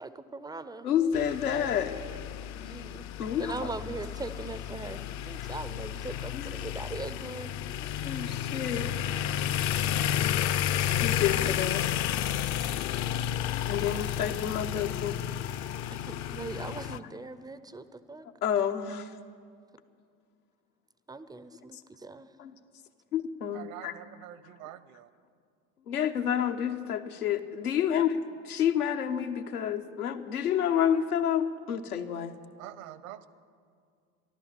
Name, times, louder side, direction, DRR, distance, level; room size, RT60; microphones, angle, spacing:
voice 1, 0.0-1.1 1.5-2.2 2.5-3.1 3.4-7.6 9.1-9.2 11.4-11.9 15.9-18.3 21.1-22.3, right 3 dB, 10° right, 13 dB, 0.4 m, -41 dB
voice 2, 0.8-2.0 3.2-3.7 6.3-6.5 7.8-9.0 11.0-12.0 13.7-15.2 18.4-19.1 22.4-22.5 23.1-24.0 25.9-28.2 28.4-32.4, left 9 dB, 80° left, 6 dB, 0.9 m, -29 dB
sound 1, 1.1-17.0, left 10 dB, 40° left, 0.5 m, -32 dB
voice 3, 23.5-25.1 32.6-33.3, right 12 dB, 65° right, 16 dB, 0.9 m, -45 dB
13.5 x 12.0 x 7.4 m, 2.2 s
hypercardioid pair, 75°, 44 cm